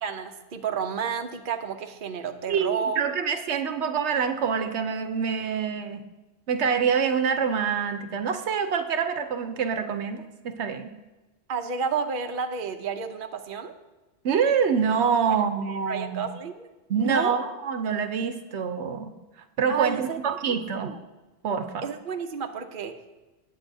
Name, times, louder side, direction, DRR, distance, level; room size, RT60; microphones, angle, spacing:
voice 1, 0.0-3.0 11.5-13.7 15.3-15.4 15.7-16.7 17.0-17.4 19.7-20.2 20.5-21.0 21.8-23.0, right 6 dB, 55° right, 5 dB, 0.9 m, -31 dB
voice 2, 2.5-6.0 6.5-10.9 14.2-16.3 16.9-19.1 19.6-20.9 21.4-21.9, right 6 dB, 80° right, 8 dB, 1.0 m, -26 dB
18.5 x 8.5 x 2.7 m, 1.1 s
omnidirectional pair, 1.1 m